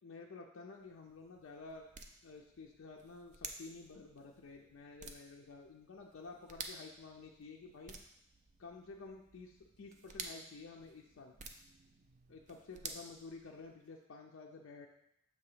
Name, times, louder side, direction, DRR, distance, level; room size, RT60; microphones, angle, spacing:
voice 1, 0.0-1.9 2.2-8.0 8.6-11.3 12.3-14.9, left 4 dB, 60° left, 0 dB, 0.4 m, -51 dB
sound 1, 0.7-13.9, right 4 dB, 35° right, 0.4 m, -52 dB
6.8 x 2.9 x 4.9 m, 0.79 s
head